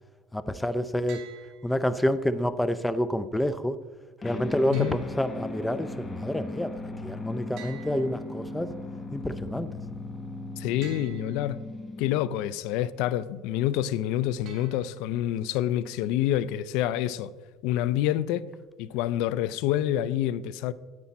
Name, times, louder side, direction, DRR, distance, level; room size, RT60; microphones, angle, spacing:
voice 1, 0.3-1.2 1.6-3.8 4.2-8.7 9.1-9.7, left 1 dB, 5° left, 0.5 m, -28 dB
sound 1, 1.1-2.1 4.7-5.8 7.6-8.8 10.8-11.8 14.4-15.4, right 9 dB, 55° right, 1.7 m, -50 dB
sound 2, 4.2-12.5, left 2 dB, 25° left, 1.1 m, -38 dB
voice 2, 10.6-11.6 12.0-17.3 17.6-18.5 18.8-20.7, left 12 dB, 75° left, 0.4 m, -27 dB
9.6 x 8.6 x 4.2 m
supercardioid pair, 110°, 0 cm